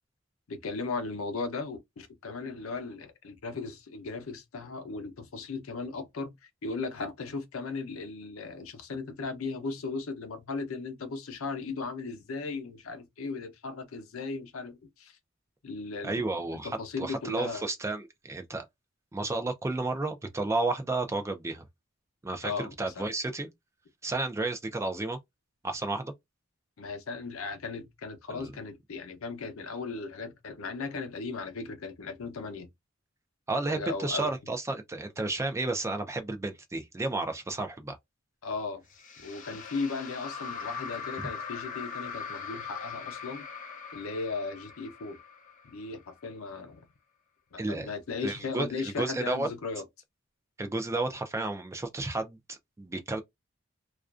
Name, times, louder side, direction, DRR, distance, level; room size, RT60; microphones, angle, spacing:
voice 1, 0.5-6.3 6.6-15.2 15.6-16.3 16.6-17.6 22.4-23.1 26.8-32.7 33.7-34.3 38.4-38.8 39.2-43.4 43.9-45.2 45.6-46.9 47.5-49.8, left 4 dB, 85° left, 0.6 m, -37 dB
voice 2, 16.0-18.6 19.1-21.7 22.2-23.5 24.0-25.2 25.6-26.1 28.3-28.5 33.5-38.0 47.6-47.9 48.2-48.7 49.0-49.5 50.6-53.2, right 2 dB, 15° right, 0.3 m, -32 dB
sound 1, 38.9-46.2, left 6 dB, 40° left, 0.6 m, -41 dB
2.4 x 2.2 x 2.3 m
head